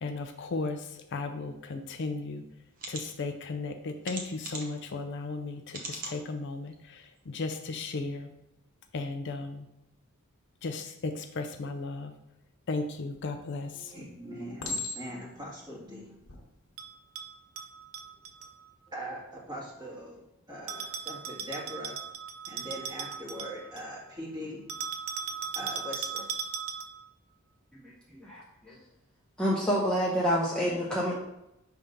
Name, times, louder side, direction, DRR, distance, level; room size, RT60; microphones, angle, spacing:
voice 1, 0.0-2.4 2.9-8.3 8.9-9.7 10.6-12.1 12.7-13.9, left 3 dB, 55° left, 6 dB, 0.5 m, -35 dB
sound 1, 2.0-2.1 2.7-3.0 4.0-4.8 5.7-6.2 6.7-6.8 7.2-7.3, right 3 dB, 40° right, 1.0 m, -39 dB
Chink clink, 13.1-13.6 14.6-15.4 16.1-16.4, left 3 dB, 85° left, 1.2 m, -36 dB
voice 2, 13.7-16.2 18.9-22.0 22.5-24.8 25.3-26.4, equal, 20° right, -4 dB, 1.6 m, -41 dB
Bell, 16.8-18.5 20.7-23.9 24.7-27.1, right 7 dB, 65° right, 0.6 m, -38 dB
voice 3, 27.8-28.8 29.4-31.1, equal, 5° left, -6 dB, 0.8 m, -28 dB
5.6 x 3.5 x 5.2 m, 0.87 s
head